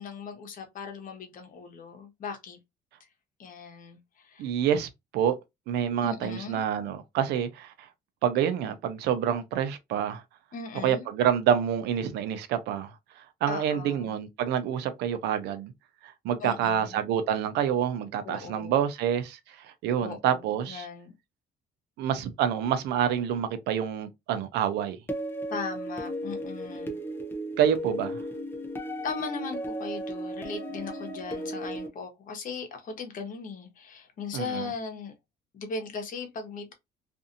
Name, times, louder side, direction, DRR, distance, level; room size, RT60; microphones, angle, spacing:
voice 1, 0.0-2.6 3.4-4.5 6.0-6.6 10.5-11.1 13.5-14.1 16.4-17.1 18.2-18.8 20.0-21.1 25.5-27.0 29.0-35.1 35.5-36.7, left 5 dB, 50° left, 1.0 m, -38 dB
voice 2, 4.4-5.4 5.7-7.9 8.2-10.2 10.8-15.7 16.0-20.9 22.0-25.0 27.6-28.2 34.3-34.7, right 9 dB, 80° right, 0.6 m, -27 dB
sound 1, 25.1-31.9, right 1 dB, 15° left, 0.6 m, -35 dB
2.6 x 2.5 x 2.5 m
cardioid pair, 110°, 17 cm